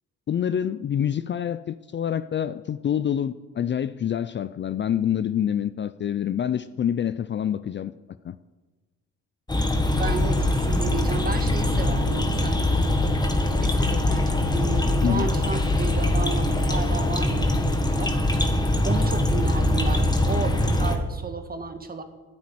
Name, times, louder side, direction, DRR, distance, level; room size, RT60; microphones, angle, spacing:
voice 1, 0.3-7.9 8.2-8.4 15.0-15.3, left 9 dB, 40° left, 13 dB, 0.5 m, -26 dB
sound 1, 9.5-21.0, left 1 dB, 15° left, 1.5 m, -23 dB
voice 2, 10.0-13.0 13.5-18.1 18.8-22.0, right 4 dB, 30° right, 7 dB, 1.7 m, -33 dB
10.5 x 8.6 x 9.8 m, 1.3 s
cardioid pair, 90°, 30 cm